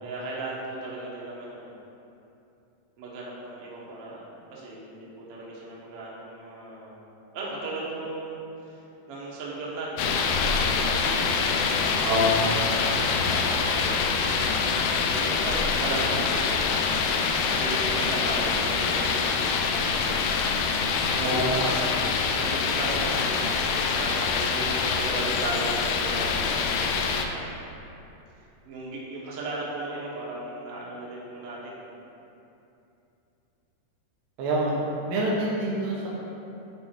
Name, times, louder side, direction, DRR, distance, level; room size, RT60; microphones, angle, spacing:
voice 1, 0.0-1.7 3.0-7.0 7.3-12.3 12.6-14.7 15.0-16.6 17.4-20.6 21.0-24.2 24.5-27.6 28.6-31.9 34.6-34.8, right 2 dB, 60° right, -5 dB, 1.6 m, -37 dB
sound 1, 10.0-27.3, left 5 dB, 80° left, 2.0 m, -25 dB
voice 2, 11.9-12.3 21.1-21.6 34.4-34.7 35.1-36.1, right 1 dB, 85° right, -5 dB, 2.9 m, -26 dB
9.5 x 3.4 x 4.5 m, 2.8 s
omnidirectional pair, 4.0 m